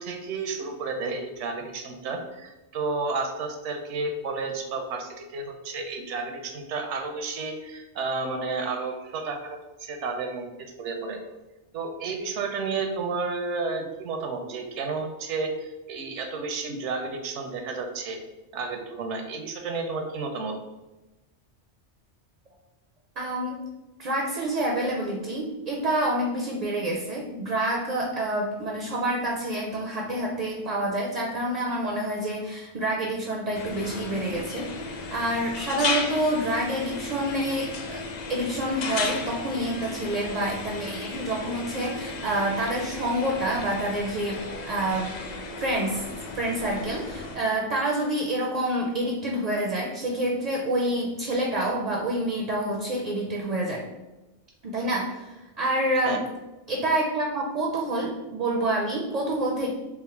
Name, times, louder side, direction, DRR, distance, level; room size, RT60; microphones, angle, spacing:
voice 1, 0.0-11.2 11.7-18.2 18.5-20.6 56.0-56.2, right 4 dB, 80° right, 5 dB, 0.9 m, -32 dB
voice 2, 23.2-23.6 24.0-38.0 38.3-45.2 45.6-46.0 46.3-53.8 54.6-56.2 56.7-59.7, right 1 dB, 55° right, -1 dB, 0.4 m, -27 dB
sound 1, 33.5-47.4, left 3 dB, 60° left, 0.4 m, -35 dB
3.4 x 2.0 x 4.2 m, 1.0 s
omnidirectional pair, 1.2 m